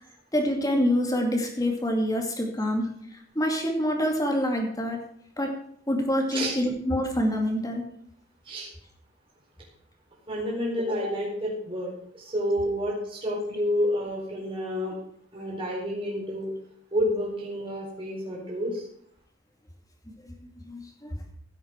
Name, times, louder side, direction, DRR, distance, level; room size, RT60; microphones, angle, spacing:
voice 1, 0.3-2.9 3.4-5.0 5.4-5.5 5.9-7.8 20.2-20.3 20.6-21.3, equal, 20° left, 2 dB, 2.4 m, -26 dB
voice 2, 10.3-15.0 15.3-16.5 16.9-18.8, equal, 30° right, -5 dB, 4.4 m, -29 dB
16.5 x 8.0 x 4.6 m, 0.66 s
head